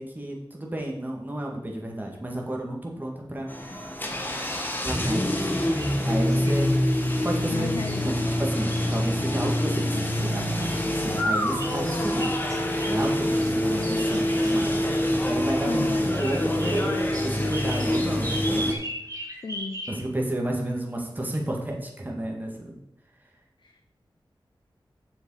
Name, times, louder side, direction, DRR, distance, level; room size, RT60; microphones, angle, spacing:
voice 1, 0.0-3.5 4.8-5.5 6.1-6.7 7.2-7.8 8.0-12.3 12.9-14.9 15.2-15.8 16.1-17.0 17.2-18.7 19.9-22.7, right 1 dB, 20° right, -1 dB, 1.9 m, -31 dB
sound 1, 3.5-18.7, left 1 dB, 20° left, 1.3 m, -26 dB
sound 2, 4.5-5.9 6.3-6.6 6.9-9.2 10.3-15.4 15.8-20.0 20.8-20.9 21.3-21.4, right 1 dB, 40° right, 2.0 m, -39 dB
voice 2, 7.5-8.4 15.6-16.1 19.4-19.8 23.6-23.9, left 4 dB, 60° left, 5 dB, 0.6 m, -35 dB
7.1 x 6.6 x 4.8 m, 0.83 s
wide cardioid pair, 75°, 9 cm